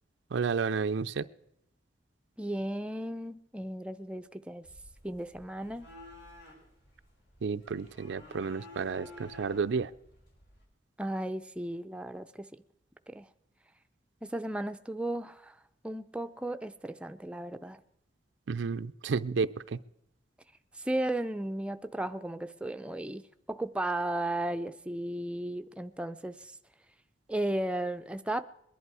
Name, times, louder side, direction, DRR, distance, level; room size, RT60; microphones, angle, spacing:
voice 1, 0.3-1.2 7.4-9.9 18.5-19.8, right 5 dB, 85° right, 11 dB, 0.4 m, -31 dB
voice 2, 2.4-4.6 5.0-5.9 11.0-12.6 13.1-13.3 14.2-15.6 15.8-17.8 20.7-23.2 23.5-26.5 27.3-28.4, right 1 dB, 5° right, 8 dB, 0.5 m, -35 dB
sound 1, 4.6-10.6, left 2 dB, 70° left, 5.1 m, -53 dB
21.5 x 11.0 x 4.8 m, 0.79 s
head